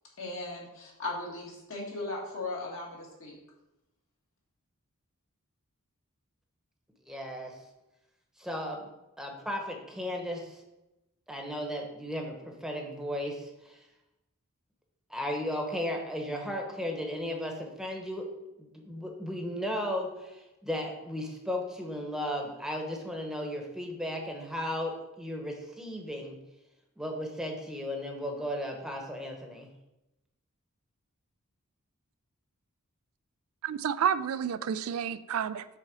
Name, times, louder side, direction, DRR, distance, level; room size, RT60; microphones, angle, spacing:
voice 1, 0.2-3.4, left 2 dB, 65° left, 2.0 m, -37 dB
voice 2, 7.1-7.6 8.4-8.9 9.2-10.6 11.3-13.8 15.1-18.2 18.6-26.4 27.0-29.7, equal, ahead, 1.0 m, -35 dB
voice 3, 33.6-35.7, right 8 dB, 75° right, 0.4 m, -30 dB
6.5 x 4.1 x 6.1 m
head